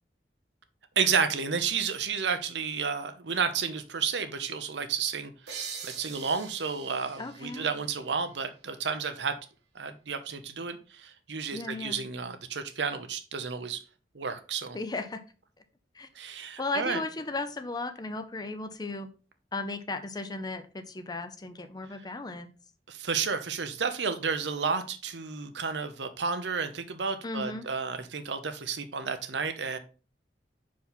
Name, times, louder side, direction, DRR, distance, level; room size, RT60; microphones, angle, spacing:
voice 1, 1.0-9.3 9.7-13.8 14.1-14.8 16.1-17.0 22.9-29.8, right 5 dB, 85° right, 8 dB, 0.8 m, -31 dB
sound 1, 5.5-8.9, right 6 dB, 70° right, 1.3 m, -44 dB
voice 2, 7.2-7.7 11.5-12.0 14.7-15.2 15.9-16.1 16.6-19.1 19.5-22.5 27.2-27.7, left 3 dB, 25° left, 9 dB, 0.6 m, -35 dB
5.4 x 4.7 x 4.1 m, 0.35 s
head